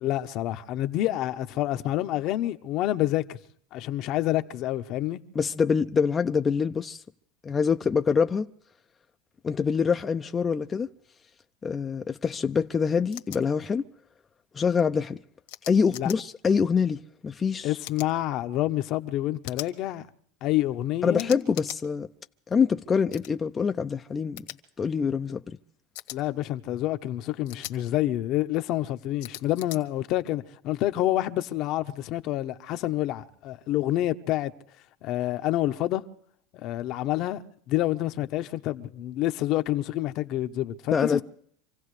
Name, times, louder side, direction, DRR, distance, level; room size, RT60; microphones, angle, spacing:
voice 1, 0.0-3.4 3.7-5.2 15.9-16.1 17.6-20.1 20.4-21.3 26.1-34.5 35.0-36.0 36.6-37.4 37.7-41.2, left 14 dB, 55° left, 1.0 m, -28 dB
voice 2, 5.4-7.0 7.4-8.5 9.4-10.9 11.6-13.8 14.5-15.2 15.7-17.7 21.0-22.1 22.5-24.4 24.8-25.6 40.9-41.2, left 6 dB, 25° left, 0.6 m, -25 dB
sound 1, 13.1-13.4 15.5-16.2 17.8-18.1 19.4-19.7 21.2-21.8 23.1-23.3 24.4-24.6 26.0-26.2 27.5-27.8 29.2-29.8, left 18 dB, 75° left, 1.6 m, -40 dB
26.5 x 16.0 x 3.3 m
supercardioid pair, 100°, 0 cm